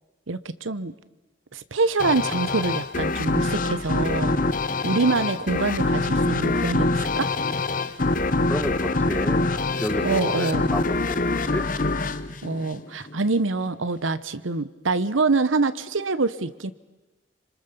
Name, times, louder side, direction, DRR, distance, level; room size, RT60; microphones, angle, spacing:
voice 1, 0.3-0.9 1.5-4.4 4.8-7.3 10.0-10.7 12.4-16.7, right 3 dB, 85° right, 14 dB, 1.0 m, -25 dB
sound 1, 2.0-13.2, left 3 dB, 45° left, 0.9 m, -25 dB
voice 2, 8.0-9.5 9.8-11.7, equal, 10° left, 10 dB, 1.2 m, -31 dB
26.5 x 25.5 x 6.9 m, 1.1 s
head